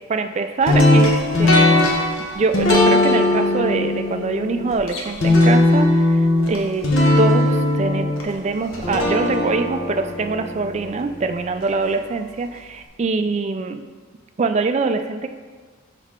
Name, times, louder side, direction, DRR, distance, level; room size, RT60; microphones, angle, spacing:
voice 1, 0.1-1.9 2.4-6.9 7.2-13.8 14.4-15.3, right 4 dB, 30° right, 7 dB, 0.3 m, -24 dB
sound 1, 0.7-11.7, left 1 dB, 75° left, 1.0 m, -19 dB
6.4 x 4.5 x 3.6 m, 1.5 s
head